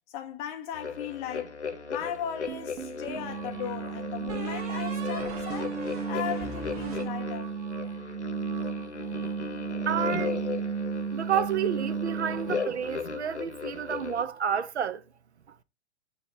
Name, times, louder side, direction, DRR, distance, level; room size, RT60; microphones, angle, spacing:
voice 1, 0.1-1.6 1.9-5.8 6.1-7.5, left 9 dB, 20° left, 0.4 m, -37 dB
sound 1, 0.7-14.2, left 5 dB, 90° left, 1.0 m, -37 dB
sound 2, 2.5-3.3 4.3-7.8, right 5 dB, 35° right, 1.2 m, -39 dB
sound 3, 3.1-12.9, right 6 dB, 55° right, 1.3 m, -34 dB
voice 2, 9.9-10.4 11.1-15.0, right 8 dB, 75° right, 0.7 m, -30 dB
7.9 x 2.9 x 4.4 m
figure-of-eight pair, 115°, 34 cm